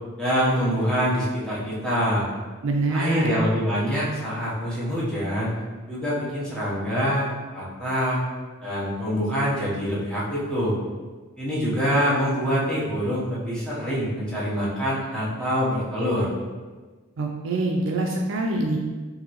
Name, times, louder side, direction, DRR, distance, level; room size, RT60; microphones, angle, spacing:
voice 1, 0.2-2.2 2.9-5.5 5.9-7.3 7.5-8.2 8.6-10.8 11.4-16.3, equal, 5° left, -9 dB, 1.0 m, -25 dB
voice 2, 2.6-3.3 17.2-18.8, right 2 dB, 60° right, 1 dB, 0.4 m, -24 dB
4.9 x 2.6 x 3.0 m, 1.3 s
head